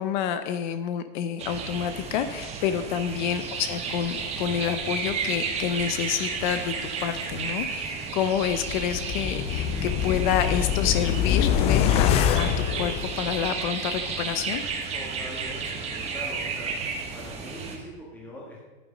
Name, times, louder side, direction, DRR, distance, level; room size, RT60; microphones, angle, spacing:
voice 1, 0.0-14.6, left 9 dB, 50° left, 10 dB, 0.8 m, -28 dB
sound 1, 1.4-17.8, right 5 dB, 20° right, 1.4 m, -33 dB
sound 2, 8.5-13.7 14.0-14.1, left 9 dB, 20° left, 0.4 m, -25 dB
voice 2, 14.9-16.7 17.1-18.7, left 1 dB, 5° left, -4 dB, 1.7 m, -42 dB
11.0 x 9.6 x 5.2 m, 1.2 s
supercardioid pair, 160°, 30 cm